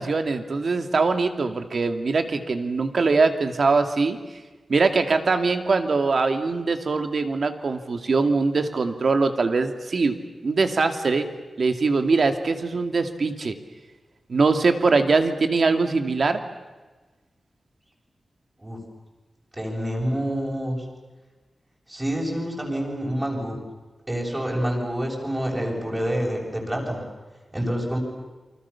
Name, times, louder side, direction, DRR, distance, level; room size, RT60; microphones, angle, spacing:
voice 1, 0.0-4.2 4.7-10.2 10.4-11.3 11.6-13.5 14.3-16.4, right 4 dB, 50° right, 7 dB, 2.4 m, -22 dB
voice 2, 19.5-20.8 21.9-23.6 24.1-27.0 27.5-28.0, equal, 15° right, -1 dB, 7.5 m, -27 dB
28.5 x 25.5 x 7.2 m, 1.3 s
wide cardioid pair, 165°, 0 cm